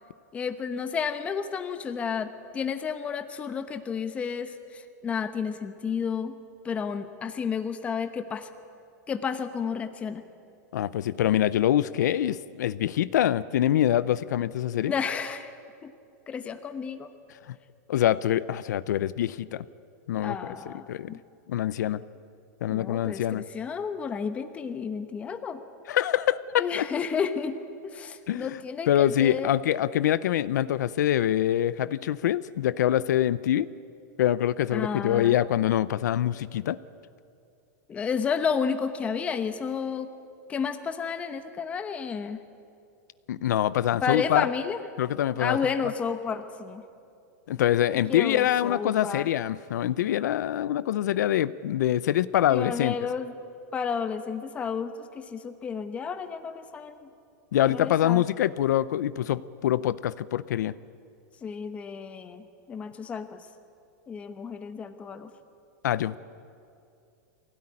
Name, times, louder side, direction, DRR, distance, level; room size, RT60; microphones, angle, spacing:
voice 1, 0.3-6.3 6.6-8.5 9.1-10.2 14.8-15.5 15.8-15.9 16.3-17.1 20.2-21.2 22.7-25.6 26.6-27.5 27.8-29.5 34.7-35.4 37.9-40.1 40.5-42.4 44.0-44.8 45.4-46.8 48.1-49.3 52.5-53.3 53.7-57.1 57.6-58.2 61.4-63.4 64.1-65.3, left 6 dB, 15° left, 9 dB, 1.0 m, -31 dB
voice 2, 10.7-14.9 17.9-19.6 20.1-20.4 20.7-21.2 21.5-22.0 22.6-23.4 25.9-26.8 28.3-28.6 28.9-33.7 34.2-36.8 43.3-44.5 45.0-45.6 47.5-52.9 57.5-60.7 65.8-66.1, left 11 dB, 75° left, 17 dB, 0.7 m, -25 dB
23.5 x 17.0 x 9.9 m, 2.5 s
supercardioid pair, 170°, 10 cm